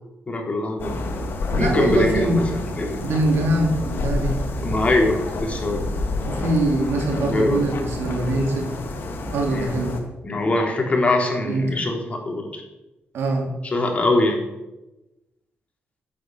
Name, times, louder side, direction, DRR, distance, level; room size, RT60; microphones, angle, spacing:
voice 1, 0.3-1.0 1.6-3.0 4.6-5.9 7.1-7.6 9.5-9.8 10.2-12.6 13.6-14.4, left 2 dB, 35° left, 1 dB, 3.7 m, -23 dB
sound 1, 0.8-10.0, left 2 dB, 65° left, 2.7 m, -29 dB
voice 2, 1.5-2.4 3.0-4.4 6.2-8.7 9.3-10.0 11.3-11.8 13.1-13.5, right 2 dB, 85° right, 2 dB, 2.9 m, -23 dB
11.5 x 8.9 x 7.7 m, 1.0 s
cardioid pair, 100°, 4 cm